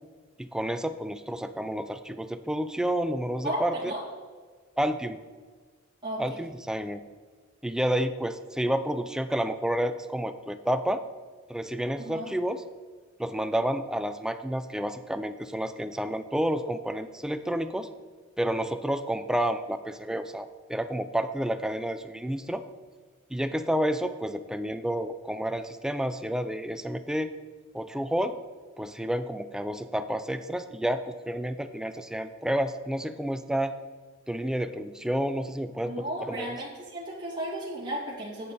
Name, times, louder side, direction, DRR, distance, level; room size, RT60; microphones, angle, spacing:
voice 1, 0.4-3.9 4.8-5.2 6.2-7.0 7.6-11.0 11.5-12.6 13.2-17.9 18.4-22.6 23.3-27.3 27.7-28.3 28.8-33.7 34.3-36.5, right 1 dB, 5° right, 10 dB, 0.4 m, -30 dB
voice 2, 3.4-4.0 6.0-6.4 12.0-12.3 35.9-38.5, right 1 dB, 25° right, -6 dB, 2.3 m, -34 dB
8.6 x 8.2 x 4.1 m, 1.5 s
head